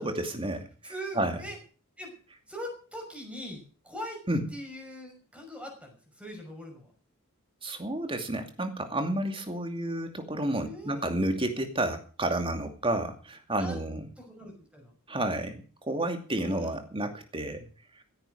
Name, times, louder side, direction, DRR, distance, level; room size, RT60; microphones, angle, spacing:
voice 1, 0.0-1.4 4.3-4.5 7.6-14.1 15.1-17.7, right 1 dB, 25° right, 6 dB, 2.5 m, -31 dB
voice 2, 0.8-1.6 2.0-2.1 2.5-4.2 4.5-6.9 10.6-11.0 13.6-13.8 14.2-14.9 16.4-16.7, equal, 5° right, 3 dB, 5.8 m, -41 dB
16.0 x 10.5 x 6.5 m, 0.38 s
head